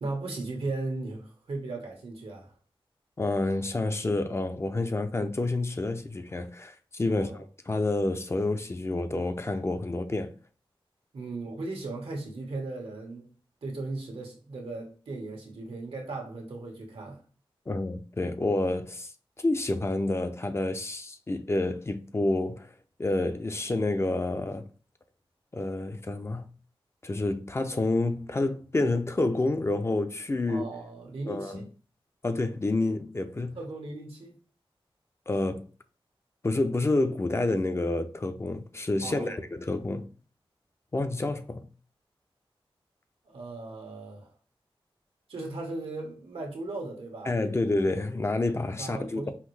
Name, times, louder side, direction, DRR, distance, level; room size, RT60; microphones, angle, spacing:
voice 1, 0.0-2.5 7.1-7.4 11.1-13.3 13.6-17.2 30.4-31.7 33.5-34.4 39.0-39.4 43.2-44.3 45.3-47.4 48.8-49.3, right 2 dB, 90° right, 1.3 m, -37 dB
voice 2, 3.2-10.3 17.7-19.1 19.4-22.7 23.0-24.6 25.5-26.5 27.0-30.7 31.3-31.6 32.2-33.6 35.3-35.7 36.4-40.1 40.9-41.7 47.3-49.3, left 2 dB, 30° left, 0.5 m, -29 dB
5.6 x 2.6 x 3.2 m
wide cardioid pair, 120°, 10 cm